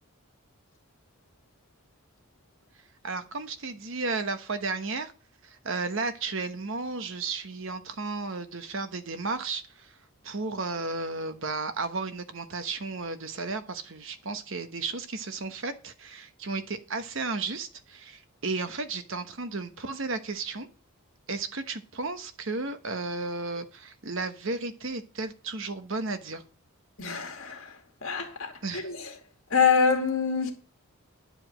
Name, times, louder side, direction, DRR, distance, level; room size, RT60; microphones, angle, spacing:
voice 1, 3.0-5.1 5.4-9.9 10.2-20.7 21.3-26.4 28.6-28.9, right 3 dB, 60° right, 1.1 m, -33 dB
voice 2, 27.0-29.1 29.5-30.5, left 6 dB, 65° left, 2.2 m, -26 dB
10.5 x 5.0 x 7.8 m
head